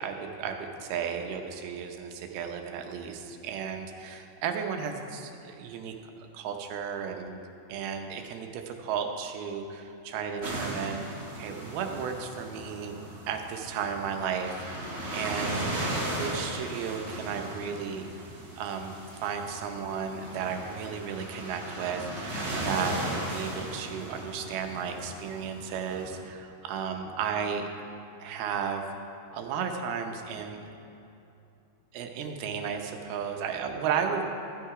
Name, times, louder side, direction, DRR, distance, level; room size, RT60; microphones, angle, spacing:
voice 1, 0.0-5.9 6.3-7.4 7.7-13.0 13.3-15.6 16.1-18.1 18.5-18.9 19.2-27.7 28.2-28.8 29.3-30.7 31.9-34.2, right 6 dB, 85° right, 4 dB, 2.8 m, -34 dB
sound 1, 10.4-26.2, right 1 dB, 55° right, 0.7 m, -37 dB
13.0 x 9.4 x 4.8 m, 2.7 s
omnidirectional pair, 4.4 m